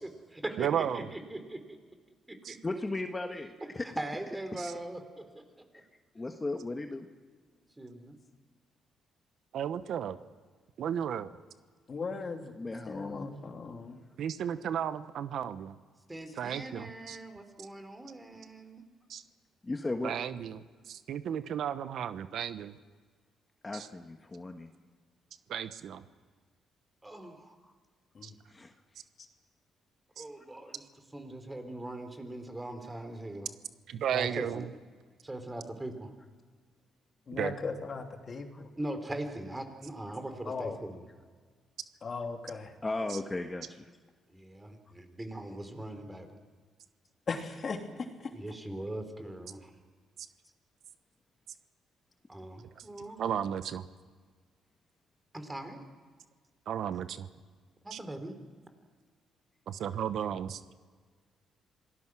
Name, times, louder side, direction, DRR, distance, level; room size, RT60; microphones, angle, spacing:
voice 1, 0.0-1.8 2.5-2.6 4.0-5.6 7.8-8.2 16.1-18.8 27.0-27.5 30.2-30.8 31.1-33.5 34.1-34.6 35.2-36.1 38.8-41.0 44.3-46.4 48.3-49.7 52.3-53.2 55.3-55.8 57.8-58.4, right 1 dB, 15° right, 7 dB, 3.7 m, -41 dB
voice 2, 0.6-1.1 2.4-2.6 4.6-4.7 9.5-10.2 10.8-11.3 14.2-15.7 16.4-17.2 19.1-19.2 20.0-22.7 23.7-23.9 25.5-26.0 28.2-28.3 30.2-30.3 33.9-34.7 37.3-37.6 43.1-43.2 52.8-52.9 53.2-53.8 56.7-57.3 57.9-58.0 59.7-60.6, right 9 dB, 70° right, 12 dB, 1.0 m, -34 dB
voice 3, 2.6-3.8 5.7-5.9 6.1-7.1 12.5-13.3 19.6-20.1 23.6-24.7 27.6-27.7 28.5-28.7 38.5-38.6 42.5-42.6 42.8-43.8, left 2 dB, 20° left, 5 dB, 1.4 m, -36 dB
voice 4, 11.9-12.5 12.9-14.0 28.1-28.3 37.3-38.7 40.4-40.8 42.0-42.7 47.3-47.8 48.2-48.3, left 4 dB, 45° left, 4 dB, 2.8 m, -37 dB
26.5 x 19.0 x 6.2 m, 1.5 s
cardioid pair, 90°, 0 cm